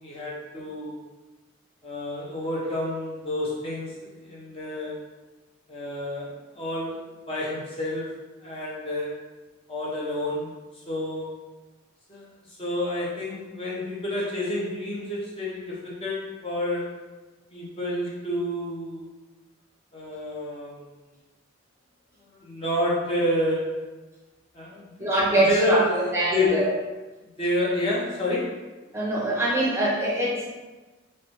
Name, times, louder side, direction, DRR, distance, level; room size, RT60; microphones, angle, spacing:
voice 1, 0.0-1.0 1.8-5.0 5.7-9.2 9.7-11.4 12.1-17.0 17.5-19.0 19.9-20.9 22.3-23.8 24.5-25.1 25.4-26.7 27.4-28.6, left 1 dB, 30° left, -5 dB, 0.8 m, -29 dB
voice 2, 25.0-26.7 28.9-30.5, right 1 dB, 15° right, -5 dB, 0.7 m, -23 dB
3.3 x 3.2 x 3.0 m, 1.2 s
head